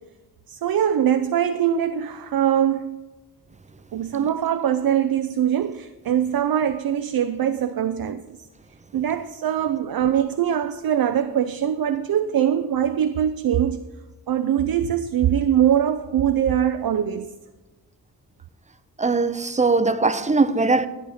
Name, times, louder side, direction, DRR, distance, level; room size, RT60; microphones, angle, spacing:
voice 1, 0.5-3.0 3.9-8.2 8.9-13.9 14.3-17.4, right 9 dB, 70° right, 0.5 m, -22 dB
voice 2, 19.0-20.9, right 3 dB, 20° right, 0.5 m, -20 dB
12.0 x 8.7 x 4.1 m
wide cardioid pair, 90°, 37 cm